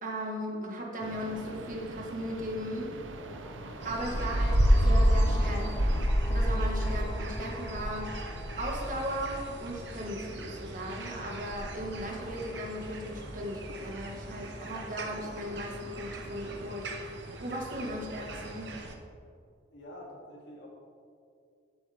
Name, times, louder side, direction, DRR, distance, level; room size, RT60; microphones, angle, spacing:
voice 1, 0.0-2.9 3.8-5.7 6.3-8.1 8.6-16.9 17.4-18.7, equal, 45° right, 0 dB, 1.7 m, -37 dB
sound 1, 1.0-6.1, right 2 dB, 85° right, 0.7 m, -44 dB
sound 2, 3.0-10.4, left 2 dB, 20° left, 0.4 m, -45 dB
sound 3, 3.8-18.9, equal, 65° right, 1.1 m, -31 dB
voice 2, 19.7-20.7, left 1 dB, 70° left, -3 dB, 2.7 m, -47 dB
15.0 x 7.9 x 3.5 m, 2.4 s
head